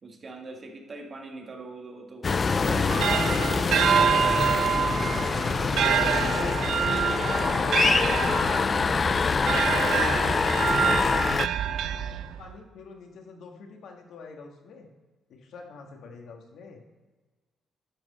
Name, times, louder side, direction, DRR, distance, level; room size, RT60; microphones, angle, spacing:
voice 1, 0.0-3.2 3.9-4.3, right 3 dB, 40° right, 2 dB, 1.7 m, -41 dB
sound 1, 2.2-11.5, left 5 dB, 35° left, 0.3 m, -25 dB
sound 2, 2.6-12.6, right 8 dB, 70° right, 0.4 m, -27 dB
voice 2, 5.5-8.9 12.4-14.9 15.3-16.8, left 4 dB, 75° left, 2 dB, 1.6 m, -44 dB
10.5 x 6.1 x 4.2 m, 1.3 s
cardioid pair, 90°, 0 cm